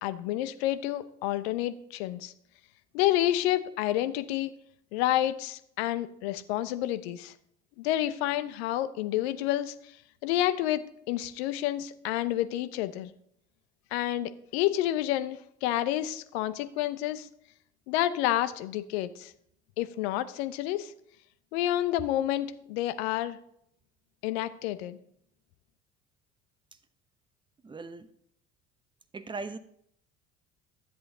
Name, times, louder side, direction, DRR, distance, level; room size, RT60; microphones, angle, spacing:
voice 1, 0.0-2.3 2.9-4.5 4.9-7.3 7.8-9.7 10.2-13.1 13.9-17.3 17.9-19.3 19.8-20.9 21.5-23.4 24.2-25.0, left 13 dB, 65° left, 12 dB, 0.9 m, -29 dB
voice 2, 27.6-28.1 29.1-29.6, right 3 dB, 15° right, 12 dB, 0.9 m, -38 dB
12.5 x 7.9 x 4.0 m, 0.69 s
figure-of-eight pair, 60°, 35 cm